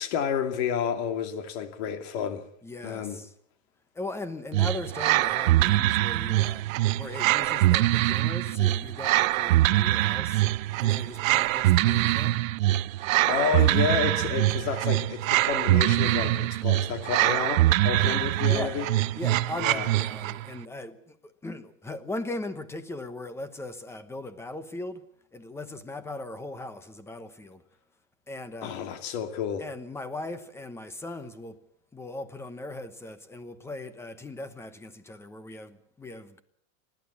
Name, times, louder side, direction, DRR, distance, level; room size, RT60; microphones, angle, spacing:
voice 1, 0.0-2.4 2.8-3.2 13.0-18.8 19.6-19.9 28.6-29.6, left 7 dB, 50° left, 2.7 m, -30 dB
voice 2, 2.6-3.3 3.9-10.4 10.8-12.4 18.0-18.1 18.5-18.8 19.2-25.0 25.3-27.6 28.3-28.8 29.6-31.6 31.9-36.4, left 2 dB, 5° left, 1.0 m, -39 dB
sound 1, 4.5-20.5, right 16 dB, 70° right, 0.8 m, -24 dB
30.0 x 12.0 x 8.4 m
supercardioid pair, 155°, 42 cm